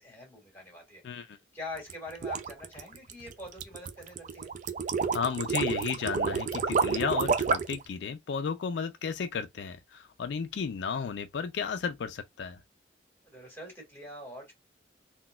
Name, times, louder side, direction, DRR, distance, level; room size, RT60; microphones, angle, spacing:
voice 1, 0.0-1.0 1.5-4.5 13.3-14.5, left 2 dB, 15° left, 1.9 m, -44 dB
voice 2, 1.0-1.4 5.1-12.6, left 6 dB, 75° left, 0.4 m, -33 dB
sound 1, 1.8-7.8, right 5 dB, 45° right, 0.4 m, -29 dB
4.0 x 2.2 x 2.2 m
head